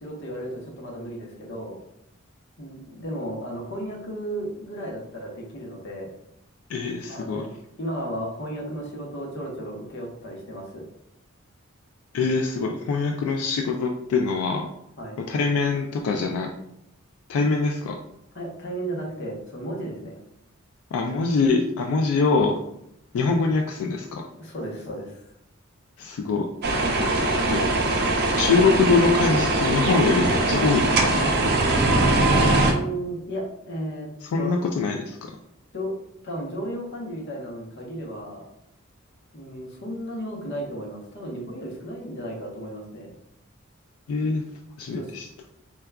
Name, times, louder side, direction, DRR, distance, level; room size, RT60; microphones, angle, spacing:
voice 1, 0.0-1.8 2.6-6.1 7.1-7.5 7.8-10.8 15.0-15.2 18.3-20.2 24.4-25.2 32.6-34.1 34.4-34.5 35.7-35.9 36.2-38.5 39.3-43.1 45.0-45.1, right 1 dB, 60° left, -1 dB, 0.8 m, -34 dB
voice 2, 6.7-7.5 12.1-14.7 15.3-16.5 17.3-18.0 20.9-22.6 23.1-24.2 26.0-26.5 27.5-27.6 28.4-31.3 34.3-35.2 44.1-44.4 44.8-45.3, left 4 dB, 85° left, 2 dB, 0.3 m, -23 dB
sound 1, 26.6-32.7, right 2 dB, 50° right, 0.5 m, -21 dB
4.4 x 2.3 x 2.2 m, 0.79 s
head